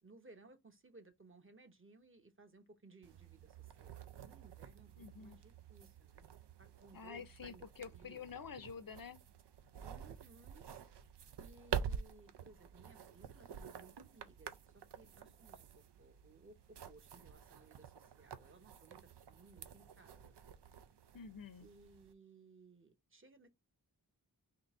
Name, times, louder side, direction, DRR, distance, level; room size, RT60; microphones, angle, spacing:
voice 1, 0.0-4.9 5.2-6.3 6.6-8.2 9.8-11.0 11.4-20.4 21.6-23.5, right 3 dB, 30° right, 0.9 m, -62 dB
sound 1, 3.0-22.1, right 7 dB, 85° right, 0.5 m, -49 dB
voice 2, 5.0-5.4 6.9-9.2 21.1-21.7, left 6 dB, 55° left, 0.6 m, -48 dB
3.8 x 2.7 x 3.6 m
wide cardioid pair, 55°, 40 cm